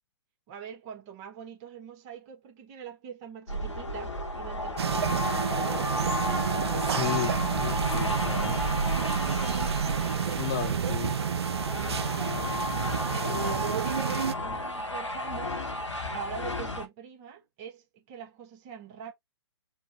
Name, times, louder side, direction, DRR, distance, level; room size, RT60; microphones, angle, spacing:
voice 1, 0.5-6.2 9.8-12.3 13.1-15.6 16.1-19.1, right 8 dB, 30° right, 1.6 m, -43 dB
sound 1, 3.5-16.9, left 1 dB, 80° left, 1.5 m, -32 dB
sound 2, 4.8-14.3, right 8 dB, 60° right, 0.5 m, -30 dB
voice 2, 6.7-8.6 10.4-11.1, left 10 dB, 35° left, 0.8 m, -34 dB
4.6 x 2.5 x 3.8 m
figure-of-eight pair, 125°, 15 cm